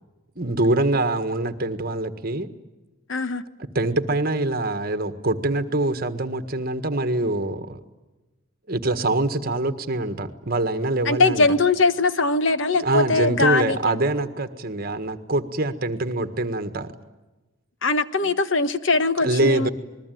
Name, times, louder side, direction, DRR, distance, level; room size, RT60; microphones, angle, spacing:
voice 1, 0.4-2.5 3.8-7.8 8.7-11.5 12.8-16.9 19.2-19.7, right 2 dB, 45° right, 10 dB, 1.6 m, -24 dB
voice 2, 3.1-3.4 11.0-14.0 17.8-19.7, left 3 dB, 65° left, 12 dB, 1.2 m, -21 dB
27.5 x 21.0 x 9.3 m, 1.1 s
head